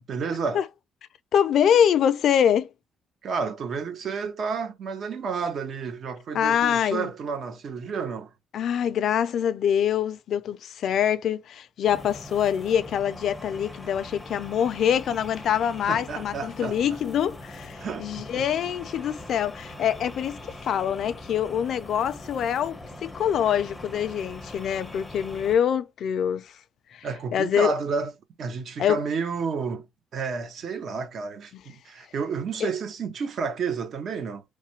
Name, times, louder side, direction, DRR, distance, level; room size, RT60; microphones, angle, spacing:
voice 1, 0.1-0.6 3.2-8.3 15.9-16.8 17.8-18.4 27.0-28.1 28.4-29.9 30.1-34.4, right 5 dB, 55° right, 0.8 m, -31 dB
voice 2, 1.3-2.7 6.3-7.1 8.5-26.5 26.9-27.1 27.3-27.7 28.8-29.0 31.5-31.6 32.6-32.7, left 9 dB, 60° left, 0.4 m, -25 dB
sound 1, 11.9-25.6, left 1 dB, 10° left, 0.6 m, -42 dB
3.2 x 2.1 x 2.9 m
cardioid pair, 115°, 0 cm